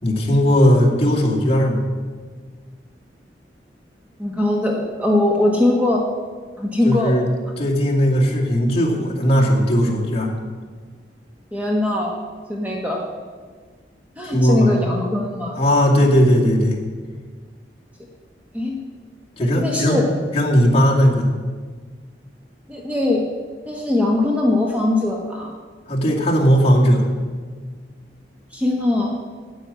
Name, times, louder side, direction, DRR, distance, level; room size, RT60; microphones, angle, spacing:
voice 1, 0.0-1.8 6.8-7.3 7.6-10.3 14.2-14.8 15.5-16.8 19.4-20.0 20.3-21.3 25.9-27.0, equal, 35° left, -3 dB, 2.3 m, -17 dB
voice 2, 4.2-6.1 6.6-7.2 11.5-12.1 12.5-13.0 14.2-15.5 18.5-18.8 19.4-20.1 22.7-23.2 23.7-25.5 28.5-29.1, left 2 dB, 10° right, -1 dB, 1.3 m, -21 dB
9.5 x 9.0 x 8.3 m, 1.5 s
head